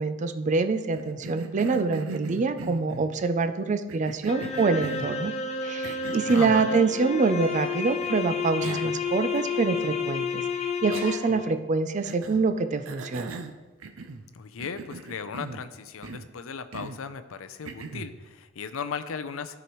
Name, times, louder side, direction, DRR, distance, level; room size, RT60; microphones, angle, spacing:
voice 1, 0.0-5.3 5.6-13.3, right 4 dB, 35° right, 10 dB, 0.4 m, -25 dB
Cough, 0.9-3.1 3.9-5.2 5.8-6.6 8.0-8.1 8.6-9.0 9.3-9.4 10.9-11.5 12.0-12.4 12.8-14.3 14.6-15.7 16.0-16.3 16.7-17.0 17.6-18.1, right 4 dB, 85° right, 0.5 m, -39 dB
sound 1, 4.3-11.5, left 5 dB, 30° left, 0.6 m, -31 dB
voice 2, 6.2-6.8 14.3-19.6, left 6 dB, 80° left, 11 dB, 0.5 m, -37 dB
12.5 x 4.9 x 3.0 m, 1.3 s
head